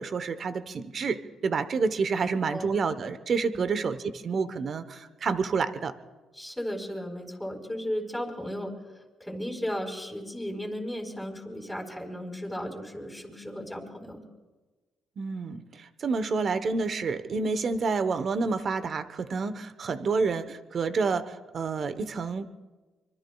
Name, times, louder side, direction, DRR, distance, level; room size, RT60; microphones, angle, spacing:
voice 1, 0.0-5.9 15.2-22.5, right 4 dB, 50° right, 11 dB, 1.0 m, -29 dB
voice 2, 2.2-2.7 3.5-3.7 6.3-8.7 9.2-14.2, equal, 5° left, 1 dB, 4.3 m, -35 dB
25.0 x 24.0 x 2.3 m, 1.2 s
cardioid pair, 80°, 0 cm